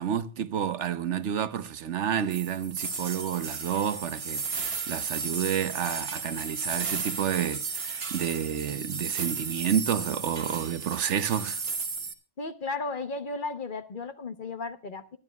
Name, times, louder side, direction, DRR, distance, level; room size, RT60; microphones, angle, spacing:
voice 1, 0.0-11.6, right 9 dB, 80° right, 1.1 m, -30 dB
sound 1, 2.3-12.1, right 4 dB, 60° right, 1.3 m, -34 dB
voice 2, 12.4-15.2, left 3 dB, 45° left, 1.2 m, -34 dB
21.0 x 12.5 x 2.3 m
omnidirectional pair, 1.2 m